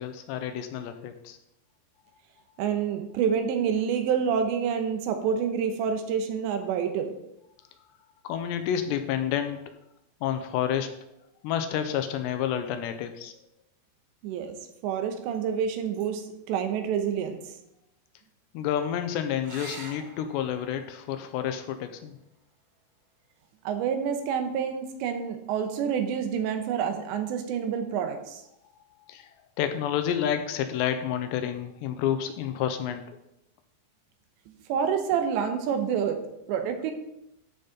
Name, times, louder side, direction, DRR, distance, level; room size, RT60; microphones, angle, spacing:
voice 1, 0.0-1.4 8.2-9.6 10.2-11.0 11.4-13.3 18.5-22.2 29.1-33.0, left 9 dB, 85° left, 8 dB, 2.8 m, -29 dB
voice 2, 2.6-7.1 14.2-14.6 14.8-17.4 23.6-28.4 34.5-36.2 36.5-36.9, right 7 dB, 80° right, 6 dB, 3.1 m, -28 dB
sound 1, 19.4-24.4 26.3-27.0 30.4-30.5 30.9-31.0, right 2 dB, 50° right, 2.9 m, -49 dB
13.0 x 5.3 x 4.0 m, 0.84 s
omnidirectional pair, 5.2 m